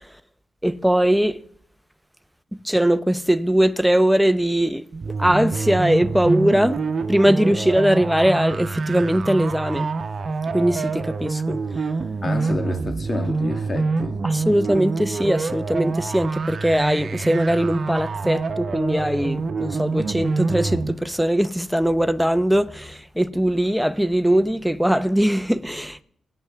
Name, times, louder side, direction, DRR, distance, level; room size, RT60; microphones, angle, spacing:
voice 1, 0.6-1.4 2.6-4.9 5.2-6.8 7.1-9.9 10.5-11.6 14.2-26.0, right 1 dB, ahead, 0.8 m, -20 dB
sound 1, 4.9-20.9, right 4 dB, 55° right, 0.9 m, -26 dB
voice 2, 12.2-14.2, left 3 dB, 40° left, 2.0 m, -29 dB
22.5 x 9.0 x 3.6 m
supercardioid pair, 45°, 0 cm